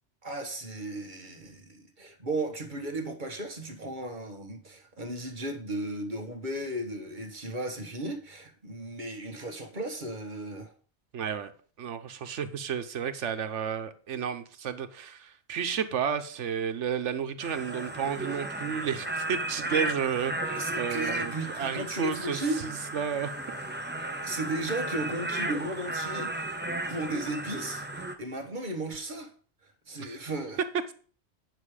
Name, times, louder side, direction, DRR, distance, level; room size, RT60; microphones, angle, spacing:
voice 1, 0.2-10.7 20.5-22.6 24.2-26.5 26.9-29.3 29.9-30.6, right 1 dB, 45° right, 4 dB, 1.6 m, -35 dB
voice 2, 11.1-11.5 11.8-23.3 30.0-30.2, right 7 dB, 90° right, 9 dB, 1.2 m, -32 dB
sound 1, 17.4-28.2, right 2 dB, 10° right, 0.7 m, -34 dB
9.5 x 6.2 x 4.9 m, 0.41 s
omnidirectional pair, 1.2 m